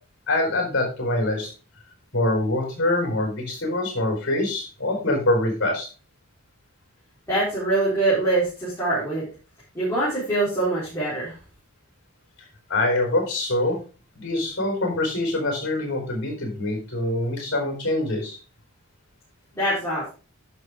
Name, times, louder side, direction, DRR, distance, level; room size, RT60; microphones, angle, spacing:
voice 1, 0.3-1.5 2.1-5.9 12.7-13.8 14.1-18.4, left 1 dB, 50° left, 2 dB, 4.6 m, -24 dB
voice 2, 7.3-9.2 9.7-11.3 19.5-20.1, right 2 dB, 15° left, -11 dB, 4.3 m, -24 dB
11.0 x 6.3 x 3.7 m, 0.34 s
head